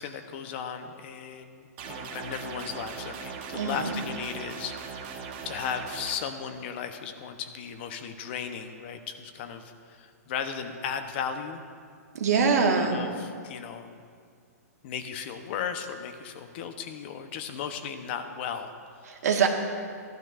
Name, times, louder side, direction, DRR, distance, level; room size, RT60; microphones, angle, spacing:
voice 1, 0.0-11.6 12.8-13.9 14.8-18.7, left 7 dB, 40° left, 7 dB, 0.8 m, -36 dB
sound 1, 1.8-6.2, right 6 dB, 35° right, 1.1 m, -39 dB
voice 2, 3.5-4.0 12.1-13.0 19.1-19.5, right 5 dB, 70° right, 2 dB, 1.6 m, -24 dB
16.0 x 12.0 x 2.5 m, 2.2 s
hypercardioid pair, 155°, 9 cm